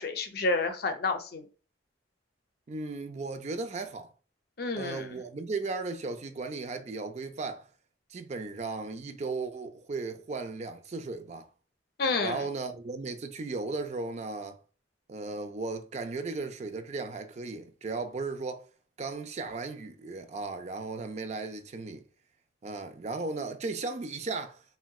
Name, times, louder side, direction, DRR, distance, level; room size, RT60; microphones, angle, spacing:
voice 1, 0.0-1.5 4.6-5.2 12.0-12.4, left 3 dB, 55° left, 0.5 m, -30 dB
voice 2, 2.7-4.1 4.7-7.7 8.1-11.5 12.2-14.6 15.1-18.7 19.0-22.0 22.6-24.6, right 3 dB, 40° right, 0.4 m, -36 dB
3.7 x 2.2 x 2.3 m
head